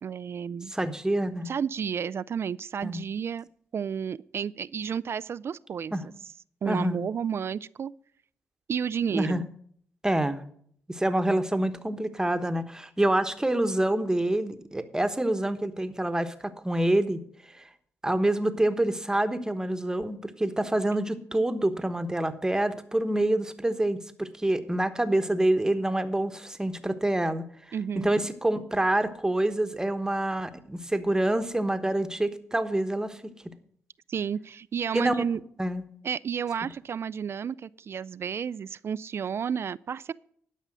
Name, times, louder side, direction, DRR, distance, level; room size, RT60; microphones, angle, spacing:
voice 1, 0.0-0.7 1.5-3.5 3.7-6.1 6.6-7.9 8.7-9.4 27.7-28.1 34.1-35.4 36.0-40.1, right 7 dB, 55° right, 0.3 m, -31 dB
voice 2, 0.7-1.5 2.8-3.0 5.9-6.0 6.7-7.0 9.0-9.4 10.0-10.4 10.9-17.2 17.5-17.7 18.0-27.5 27.9-33.5 34.9-35.2 35.6-35.8, right 1 dB, 10° right, 1.2 m, -27 dB
11.5 x 5.5 x 7.4 m
supercardioid pair, 60°, 5 cm